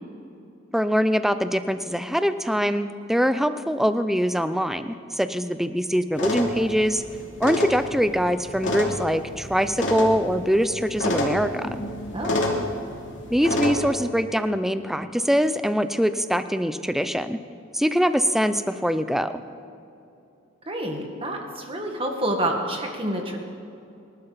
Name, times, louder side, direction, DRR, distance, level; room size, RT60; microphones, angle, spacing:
voice 1, 0.7-7.0 7.4-11.7 13.3-17.4 17.7-19.3, equal, ahead, 11 dB, 0.5 m, -23 dB
sound 1, 6.1-13.7, left 1 dB, 65° left, 2.9 m, -29 dB
voice 2, 12.1-12.5 20.7-23.4, right 1 dB, 25° right, 2 dB, 1.7 m, -28 dB
24.0 x 12.0 x 4.1 m, 2.7 s
head